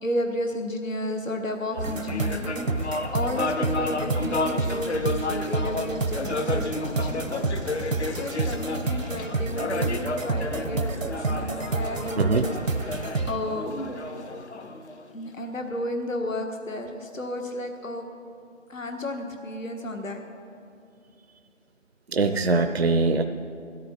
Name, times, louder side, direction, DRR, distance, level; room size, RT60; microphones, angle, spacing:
voice 1, 0.0-12.6 12.9-13.0 13.2-13.7 15.1-18.1 18.7-20.2, left 1 dB, 85° left, 4 dB, 1.5 m, -32 dB
sound 1, 1.7-15.4, left 2 dB, 60° left, 0.9 m, -32 dB
sound 2, 1.8-13.4, right 3 dB, 80° right, 1.1 m, -30 dB
voice 2, 22.1-23.2, right 3 dB, 55° right, 7 dB, 0.6 m, -22 dB
16.5 x 13.0 x 4.4 m, 2.7 s
figure-of-eight pair, 165°, 39 cm